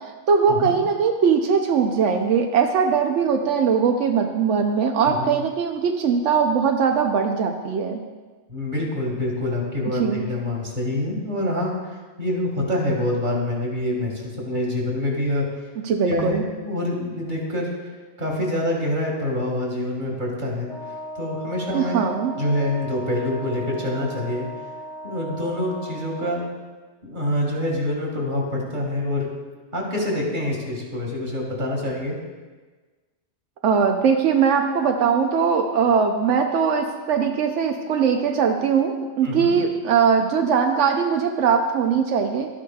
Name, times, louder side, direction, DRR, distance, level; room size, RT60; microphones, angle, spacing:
voice 1, 0.3-8.0 9.9-10.2 15.8-16.4 21.7-22.4 33.6-42.5, right 6 dB, 90° right, 4 dB, 1.0 m, -20 dB
voice 2, 5.0-5.4 8.5-11.9 12.2-15.4 16.1-17.7 18.2-20.7 21.2-22.0 22.3-24.5 25.0-26.4 27.0-29.3 29.7-32.2 39.2-39.6, left 1 dB, 45° right, -2 dB, 2.1 m, -26 dB
Wind instrument woodwind instrument, 20.7-26.4, equal, 5° left, 0.7 m, -37 dB
12.0 x 9.9 x 2.3 m, 1.3 s
omnidirectional pair, 1.2 m